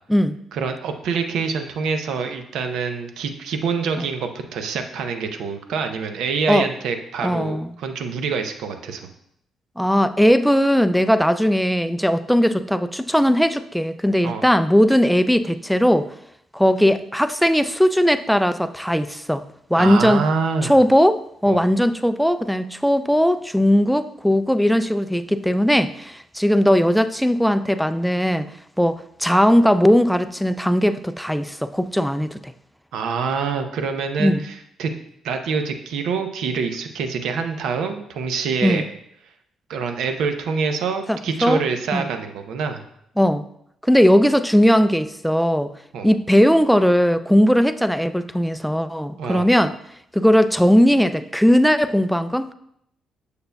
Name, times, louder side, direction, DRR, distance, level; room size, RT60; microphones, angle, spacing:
voice 1, 0.5-9.1 14.2-14.4 19.7-20.7 21.5-21.6 32.9-34.9 35.2-38.8 39.7-42.8 45.9-46.1 49.2-49.5, right 5 dB, 80° right, 7 dB, 0.6 m, -26 dB
voice 2, 7.2-7.7 9.8-16.1 16.5-19.4 19.7-20.2 20.6-28.5 28.8-32.5 34.2-34.4 38.6-38.8 41.1-41.6 41.9-42.0 43.2-43.4 43.8-45.7 46.0-49.8 50.1-52.5, equal, ahead, 11 dB, 0.3 m, -18 dB
6.7 x 6.6 x 2.3 m, 0.72 s
cardioid pair, 90°, 0 cm